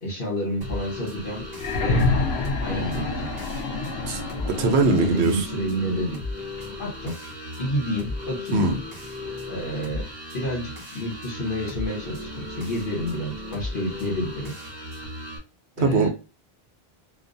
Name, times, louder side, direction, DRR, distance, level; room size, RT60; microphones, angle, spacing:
voice 1, 0.0-1.4 1.8-2.1 2.6-3.3 4.8-6.2 6.8-7.2 7.6-8.6 9.5-14.5 15.8-16.1, equal, 55° left, 1.1 m, -29 dB
sound 1, 0.6-15.4, left 1 dB, 45° right, 0.8 m, -36 dB
sound 2, 1.5-5.4 6.6-6.7, left 3 dB, 80° left, 0.8 m, -27 dB
voice 2, 4.5-5.4 8.5-8.8 15.8-16.1, right 3 dB, 85° right, 0.9 m, -21 dB
2.4 x 2.2 x 2.5 m
omnidirectional pair, 1.1 m